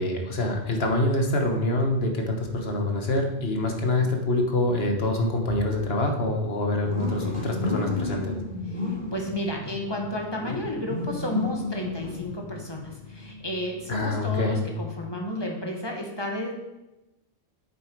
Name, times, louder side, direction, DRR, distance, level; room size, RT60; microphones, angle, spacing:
voice 1, 0.0-8.4 13.9-14.7, left 2 dB, 60° left, 3 dB, 1.4 m, -25 dB
sound 1, 1.3-14.3, left 3 dB, 40° left, 3.9 m, -36 dB
voice 2, 8.7-16.5, left 1 dB, 20° left, 0 dB, 1.5 m, -32 dB
8.7 x 7.0 x 4.6 m, 0.99 s
omnidirectional pair, 1.2 m